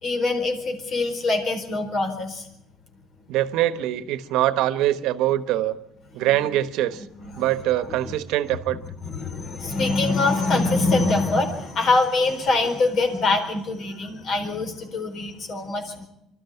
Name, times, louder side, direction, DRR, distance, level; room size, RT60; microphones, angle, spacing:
voice 1, 0.0-2.4 6.2-6.6 7.2-7.4 8.0-8.1 8.8-16.1, left 3 dB, 50° left, 6 dB, 4.3 m, -24 dB
voice 2, 3.3-5.8 6.1-7.0 7.4-8.8, right 13 dB, 80° right, 14 dB, 1.2 m, -23 dB
25.0 x 13.0 x 9.3 m, 0.82 s
cardioid pair, 110°, 0 cm